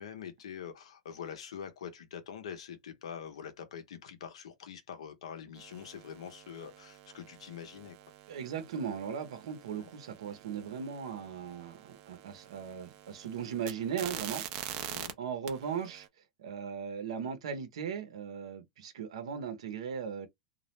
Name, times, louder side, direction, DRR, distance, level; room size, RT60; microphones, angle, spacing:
voice 1, 0.0-8.0 9.7-9.9 14.8-15.1, left 8 dB, 85° left, 0.7 m, -45 dB
sound 1, 5.6-15.1 15.5-16.1, right 11 dB, 50° right, 0.5 m, -46 dB
voice 2, 8.3-14.4 15.2-16.1 16.4-20.3, right 7 dB, 85° right, 0.8 m, -38 dB
2.4 x 2.0 x 3.0 m
supercardioid pair, 125°, 3 cm